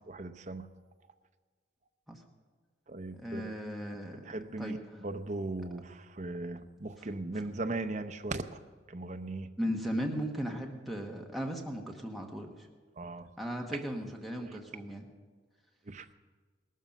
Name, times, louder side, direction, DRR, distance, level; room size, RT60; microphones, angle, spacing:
voice 1, 0.1-0.7 2.9-3.6 4.2-8.5 8.9-9.5 13.0-13.3 13.7-13.8 15.9-16.1, right 2 dB, 40° right, 8 dB, 0.7 m, -38 dB
voice 2, 3.1-4.3 4.6-4.8 9.6-12.7 13.4-15.1, equal, ahead, 1 dB, 1.2 m, -36 dB
18.5 x 13.0 x 5.3 m, 1.5 s
head